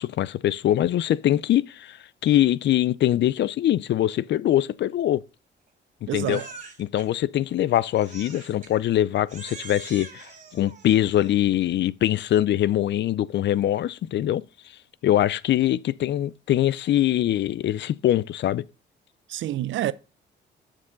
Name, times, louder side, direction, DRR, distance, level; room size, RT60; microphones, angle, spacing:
voice 1, 0.0-2.0 2.2-5.2 6.0-6.4 6.8-10.3 10.5-14.4 15.0-18.6, left 12 dB, 65° left, 0.5 m, -23 dB
voice 2, 6.1-6.5 19.3-19.9, right 13 dB, 75° right, 0.6 m, -28 dB
Crying sobbing, 6.2-7.1 8.0-8.7 9.3-11.4, right 4 dB, 40° right, 3.4 m, -43 dB
11.0 x 6.5 x 3.9 m
cardioid pair, 90°, 20 cm